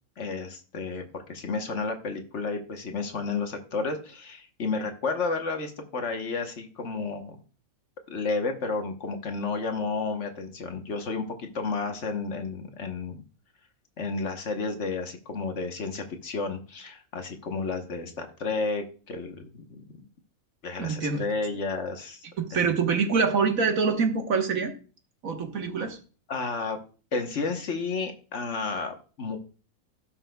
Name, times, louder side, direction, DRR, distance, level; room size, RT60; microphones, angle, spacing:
voice 1, 0.2-7.4 8.1-13.2 14.0-19.8 20.6-22.2 22.5-22.7 25.7-25.8 26.3-26.8 27.1-29.4, left 4 dB, 60° left, 5 dB, 1.4 m, -32 dB
voice 2, 20.8-21.2 22.4-24.7 25.2-26.0, right 5 dB, 75° right, 5 dB, 1.6 m, -25 dB
16.5 x 5.9 x 2.3 m, 0.37 s
omnidirectional pair, 1.4 m